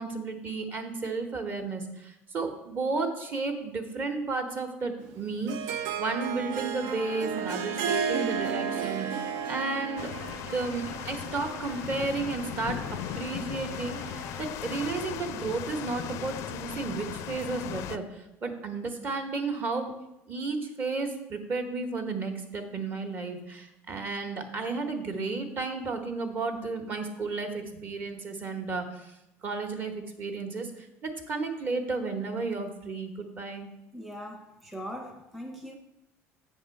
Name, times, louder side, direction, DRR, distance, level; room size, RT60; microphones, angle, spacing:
voice 1, 0.0-10.1 10.4-12.8 13.2-19.9 20.3-29.1 29.4-33.7, right 3 dB, 35° right, 1.0 m, -33 dB
Harp, 5.1-10.4, right 7 dB, 80° right, 0.5 m, -32 dB
Bowed string instrument, 6.7-14.6, right 5 dB, 65° right, 0.9 m, -45 dB
sound 1, 10.0-18.0, left 10 dB, 60° left, 0.4 m, -38 dB
voice 2, 33.9-35.7, equal, ahead, 0.6 m, -40 dB
8.2 x 3.6 x 6.4 m
cardioid pair, 155°, 6 cm